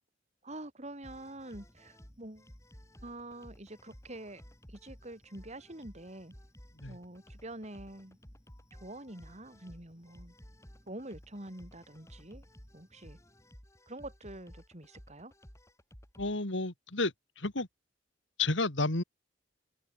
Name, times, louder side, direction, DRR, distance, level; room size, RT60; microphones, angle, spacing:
voice 1, 0.4-2.5 3.0-4.4 4.7-6.3 6.9-8.2 8.8-10.3 10.9-12.4 12.7-13.2 13.9-15.3, right 1 dB, 35° right, 3.9 m, -46 dB
sound 1, 1.0-16.4, equal, 15° left, 3.7 m, -55 dB
voice 2, 16.2-17.7 18.4-19.0, left 3 dB, 80° left, 3.3 m, -31 dB
head